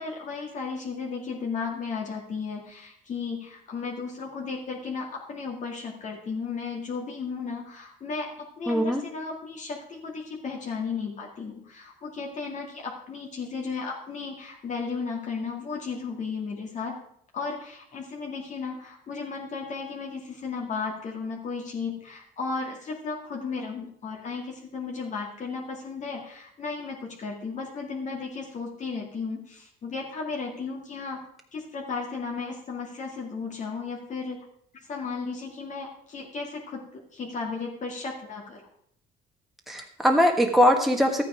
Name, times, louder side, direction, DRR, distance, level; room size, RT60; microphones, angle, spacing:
voice 1, 0.0-8.3 8.6-17.0 17.3-31.2 31.5-34.4 34.9-38.6, left 4 dB, 45° left, -1 dB, 2.2 m, -34 dB
voice 2, 8.7-9.0 39.7-41.2, equal, ahead, 1 dB, 1.5 m, -21 dB
12.5 x 9.0 x 5.0 m, 0.68 s
cardioid pair, 110°, 17 cm